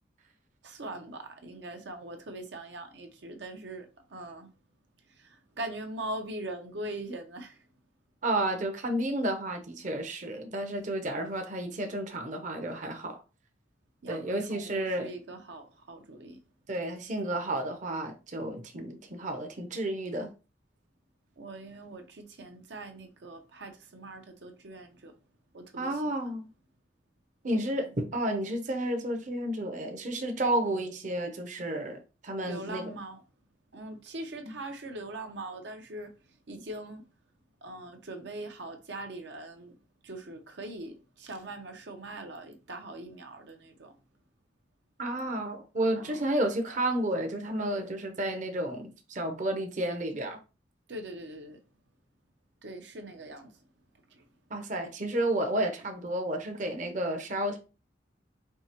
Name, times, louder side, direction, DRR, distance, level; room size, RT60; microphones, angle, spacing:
voice 1, 0.6-4.5 5.1-7.6 14.0-16.4 21.4-25.2 25.5-26.3 32.4-33.2 33.7-36.1 36.5-37.0 37.6-39.7 40.0-44.0 46.0-46.3 50.9-51.6 52.6-53.6 54.1-54.2, right 2 dB, 80° right, 0.7 m, -42 dB
voice 2, 8.2-13.2 14.1-15.1 16.7-20.3 25.8-26.5 27.4-33.0 34.4-34.5 45.0-50.4 54.5-57.6, right 1 dB, 45° right, 0.6 m, -31 dB
4.6 x 2.8 x 2.9 m
head